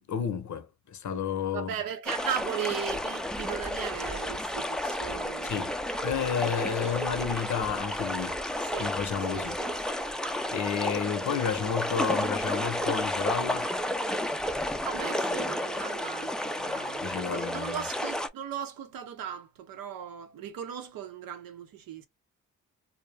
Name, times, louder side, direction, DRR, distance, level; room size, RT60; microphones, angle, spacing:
voice 1, 0.0-1.8 5.5-5.7 6.0-8.4 8.8-9.5 10.5-13.7 17.0-17.8, left 7 dB, 60° left, 0.7 m, -31 dB
voice 2, 1.5-5.6 8.6-8.9 9.3-10.1 14.8-22.1, right 9 dB, 80° right, 0.7 m, -37 dB
sound 1, 2.1-18.3, left 1 dB, ahead, 0.3 m, -32 dB
2.3 x 2.0 x 3.2 m
supercardioid pair, 60°, 34 cm